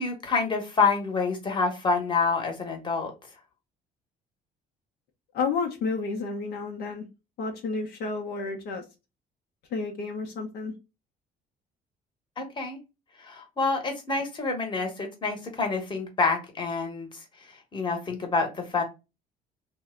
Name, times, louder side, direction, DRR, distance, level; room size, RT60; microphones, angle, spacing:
voice 1, 0.0-3.1 12.4-12.8 13.2-18.8, left 4 dB, 30° left, 3 dB, 1.1 m, -27 dB
voice 2, 5.3-7.1 7.4-8.8 9.7-10.7, left 4 dB, 70° left, 1 dB, 0.7 m, -31 dB
2.7 x 2.1 x 3.6 m, 0.26 s
cardioid pair, 110°, 17 cm